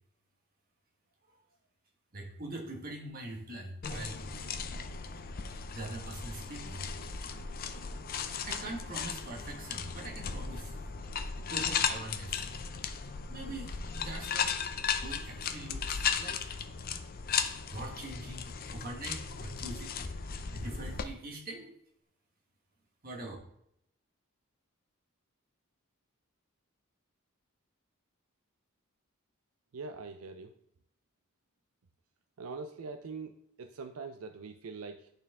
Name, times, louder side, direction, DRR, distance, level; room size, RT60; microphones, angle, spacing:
voice 1, 2.1-4.3 5.7-6.9 8.4-10.8 11.4-12.4 13.3-14.5 15.0-16.5 17.3-17.4 17.7-21.7 23.0-23.4, right 2 dB, 45° right, 0 dB, 1.4 m, -43 dB
sound 1, 3.8-21.1, left 6 dB, 45° left, 0.5 m, -36 dB
voice 2, 29.7-30.5 32.4-35.1, right 4 dB, 75° right, 8 dB, 0.4 m, -43 dB
10.5 x 4.5 x 3.6 m, 0.74 s
head